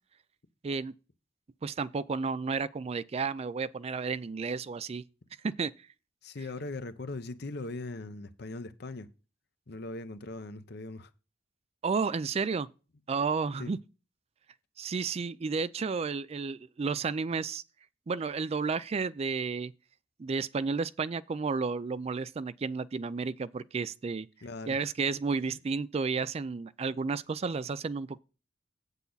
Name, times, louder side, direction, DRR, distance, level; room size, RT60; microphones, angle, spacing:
voice 1, 0.6-0.9 1.6-5.0 5.4-5.7 11.8-12.7 13.1-13.8 14.8-17.6 18.1-19.7 20.2-24.3 24.7-28.2, right 4 dB, 35° right, 0.4 m, -32 dB
voice 2, 6.2-9.1 9.7-11.1 13.6-13.7 24.4-24.9, left 2 dB, 60° left, 0.9 m, -40 dB
8.3 x 8.2 x 4.0 m
head